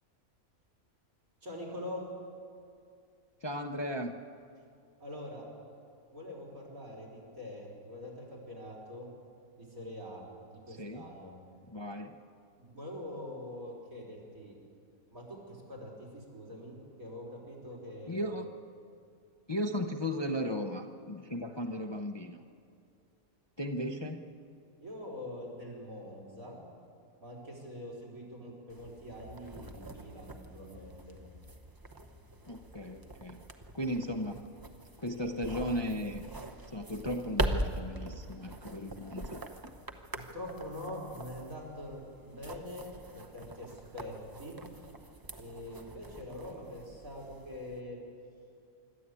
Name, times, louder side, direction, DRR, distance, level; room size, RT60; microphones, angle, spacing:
voice 1, 1.4-2.0 5.0-5.5 6.1-9.1 9.6-10.2 10.5-11.3 12.6-14.6 15.1-18.3 24.8-26.6 27.2-31.2 40.1-44.6 45.4-48.0, left 1 dB, 75° right, -4 dB, 5.0 m, -44 dB
voice 2, 3.4-4.2 10.7-11.1 11.7-12.2 18.1-18.5 19.5-22.4 23.6-24.3 32.5-33.4 33.7-34.4 35.0-36.3 36.7-39.4, equal, 25° left, 5 dB, 0.6 m, -36 dB
sound 1, 28.7-47.8, right 1 dB, 20° right, 0.7 m, -42 dB
25.5 x 12.5 x 8.4 m, 2.4 s
omnidirectional pair, 1.5 m